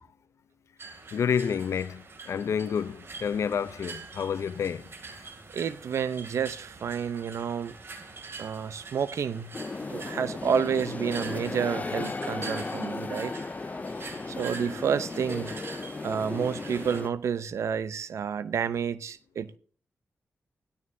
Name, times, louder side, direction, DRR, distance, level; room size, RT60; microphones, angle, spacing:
sound 1, 0.8-17.0, right 4 dB, 55° right, 2.6 m, -45 dB
voice 1, 1.1-4.9, left 7 dB, 80° left, 0.6 m, -29 dB
voice 2, 5.5-7.8 8.4-9.5 9.9-13.3 14.3-15.6 16.0-19.6, right 7 dB, 80° right, 0.6 m, -30 dB
sound 2, 9.5-17.1, left 3 dB, 35° left, 0.5 m, -35 dB
16.5 x 12.5 x 2.7 m
cardioid pair, 65°, 5 cm